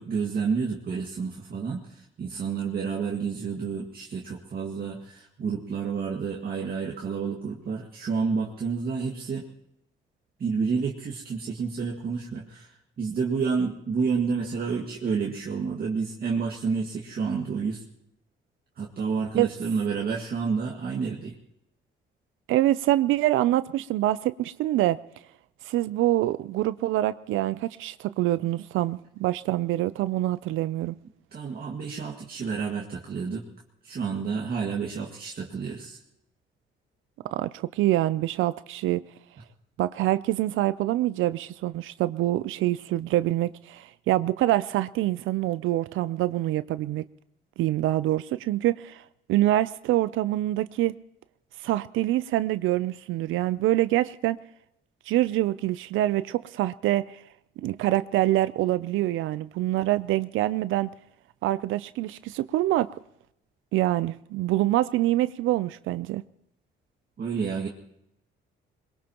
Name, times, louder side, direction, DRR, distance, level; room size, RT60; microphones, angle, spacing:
voice 1, 0.0-9.4 10.4-17.8 18.8-21.3 31.3-33.4 33.8-36.0 67.2-67.7, right 5 dB, 50° right, 1.9 m, -30 dB
voice 2, 22.5-25.0 25.6-31.0 37.3-39.0 39.8-47.1 47.6-50.9 51.6-54.4 55.1-57.2 57.6-60.9 61.4-62.9 63.7-66.2, right 15 dB, 85° right, 0.5 m, -25 dB
22.0 x 22.0 x 3.0 m
cardioid pair, 90°, 20 cm